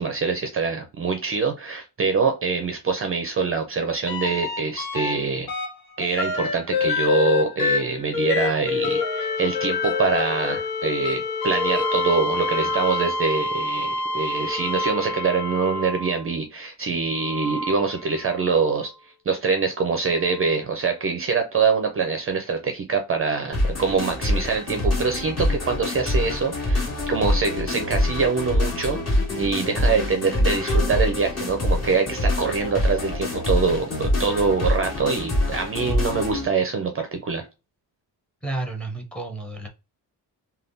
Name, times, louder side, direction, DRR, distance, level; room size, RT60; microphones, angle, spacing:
voice 1, 0.0-5.5 6.0-29.0 29.3-37.4, right 4 dB, 35° right, 5 dB, 0.4 m, -24 dB
sound 1, 4.1-5.1 5.5-16.3 17.1-18.7 20.4-20.5, left 4 dB, 60° left, 1.0 m, -27 dB
sound 2, 23.5-36.5, left 1 dB, 40° left, 1.7 m, -25 dB
voice 2, 38.4-39.7, right 2 dB, 5° left, 3 dB, 0.7 m, -31 dB
3.4 x 2.3 x 2.5 m, 0.28 s
wide cardioid pair, 145°, 40 cm